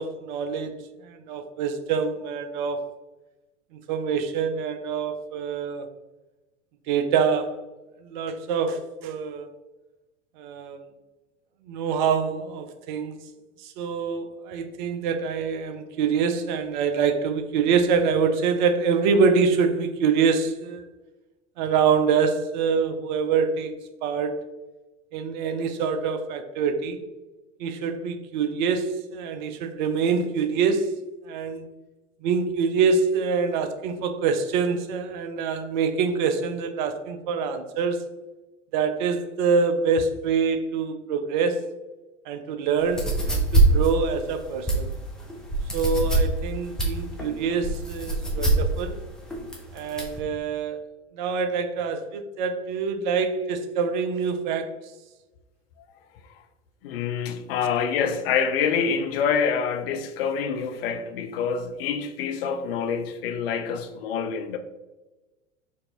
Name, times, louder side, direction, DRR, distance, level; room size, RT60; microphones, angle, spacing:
voice 1, 0.0-2.9 3.7-5.9 6.9-7.6 8.0-9.5 10.4-10.8 11.7-13.2 13.6-20.8 21.6-24.4 25.1-27.0 27.6-30.9 31.2-31.7 32.2-38.0 38.7-41.7 42.3-44.9 45.7-49.0 49.7-50.8 51.1-54.8, right 5 dB, 40° right, 0.4 m, -25 dB
sound 1, 42.8-50.2, right 3 dB, ahead, 0.6 m, -24 dB
voice 2, 56.8-64.6, left 6 dB, 50° left, 0.5 m, -26 dB
4.6 x 2.6 x 2.8 m
figure-of-eight pair, 85°, 37 cm